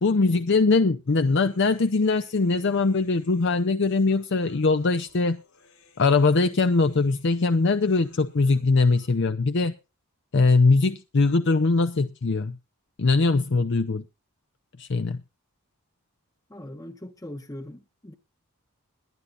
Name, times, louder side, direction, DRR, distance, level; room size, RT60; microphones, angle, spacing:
voice 1, 0.0-5.4 6.0-9.8 10.3-12.6 13.0-14.0 14.8-15.2, left 3 dB, 55° left, 0.6 m, -21 dB
Human voice, 1.1-9.1, left 4 dB, 85° left, 7.2 m, -59 dB
voice 2, 16.5-18.1, left 1 dB, 15° left, 0.9 m, -40 dB
21.5 x 11.0 x 2.5 m
head